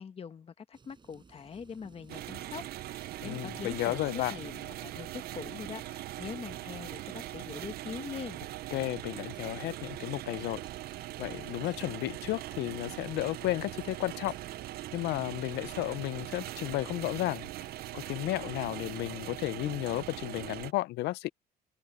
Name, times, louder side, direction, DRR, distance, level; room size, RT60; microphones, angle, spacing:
voice 1, 0.0-4.0 4.3-8.4, left 6 dB, 35° left, 1.3 m, -43 dB
sound 1, 0.7-20.5, right 4 dB, 25° right, 6.4 m, -60 dB
sound 2, 2.1-20.7, right 15 dB, 65° right, 0.6 m, -41 dB
voice 2, 3.2-4.3 8.7-10.6 11.2-14.4 14.9-17.5 17.9-21.3, left 18 dB, 80° left, 0.6 m, -33 dB
cardioid pair, 110°, 17 cm